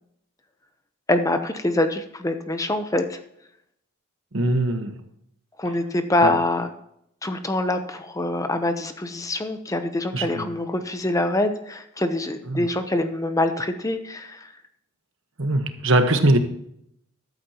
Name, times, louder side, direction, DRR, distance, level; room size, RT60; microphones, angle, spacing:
voice 1, 1.1-3.2 5.6-6.7 7.2-14.5, left 1 dB, 15° left, 8 dB, 0.8 m, -25 dB
voice 2, 4.3-5.0 6.2-6.3 10.1-10.5 12.5-12.6 15.4-16.4, right 1 dB, 60° right, 7 dB, 1.3 m, -21 dB
14.0 x 12.0 x 3.0 m, 0.75 s
head